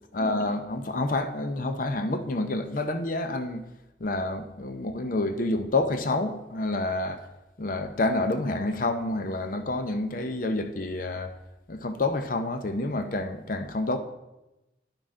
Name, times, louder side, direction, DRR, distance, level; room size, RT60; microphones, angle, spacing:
voice 1, 0.1-3.6 4.0-7.2 7.6-11.3 11.7-14.0, left 2 dB, 45° left, 0.6 m, -28 dB
9.7 x 6.3 x 3.7 m
head